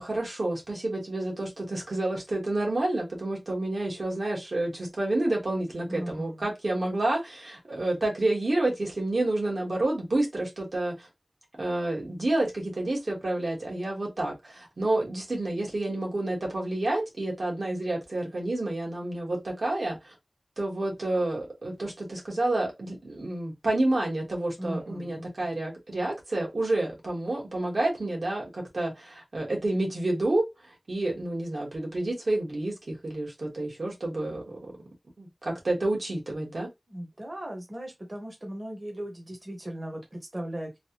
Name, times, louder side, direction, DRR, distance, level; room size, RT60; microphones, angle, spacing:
voice 1, 0.0-11.1 11.6-20.1 20.6-34.7 35.2-36.7, right 2 dB, 75° right, 1.3 m, -29 dB
voice 2, 5.9-6.5 24.6-25.3 36.9-40.8, right 1 dB, 35° right, 1.0 m, -38 dB
3.2 x 2.3 x 2.9 m
wide cardioid pair, 65°, 0 cm